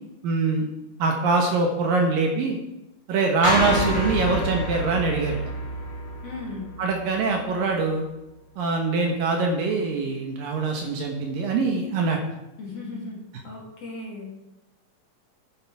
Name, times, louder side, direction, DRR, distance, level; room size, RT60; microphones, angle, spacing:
voice 1, 0.2-0.7 1.0-2.6 3.1-5.4 6.8-8.0 8.6-12.2, right 3 dB, 65° right, 2 dB, 2.6 m, -23 dB
sound 1, 3.4-7.7, equal, 10° left, 1.4 m, -29 dB
voice 2, 6.2-6.7 12.6-14.3, left 3 dB, 40° left, -3 dB, 2.9 m, -36 dB
12.5 x 8.6 x 4.8 m, 0.94 s
omnidirectional pair, 4.7 m